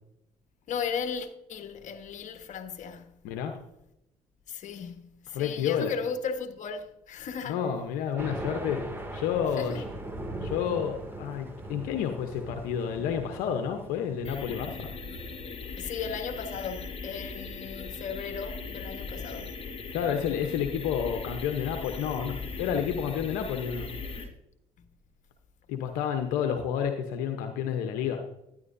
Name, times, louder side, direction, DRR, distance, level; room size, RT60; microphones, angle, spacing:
voice 1, 0.7-3.2 4.5-7.6 9.6-9.8 15.8-19.5, left 6 dB, 60° left, 1.4 m, -36 dB
voice 2, 3.2-3.6 5.3-6.0 7.4-8.8 9.1-9.8 10.4-14.9 19.9-23.9 25.7-28.2, left 8 dB, 85° left, 0.9 m, -30 dB
Thunder, 8.2-24.3, right 1 dB, 15° right, 2.3 m, -43 dB
sound 1, 14.2-24.2, left 4 dB, 45° left, 1.7 m, -39 dB
12.0 x 10.0 x 2.7 m
supercardioid pair, 70°, 14 cm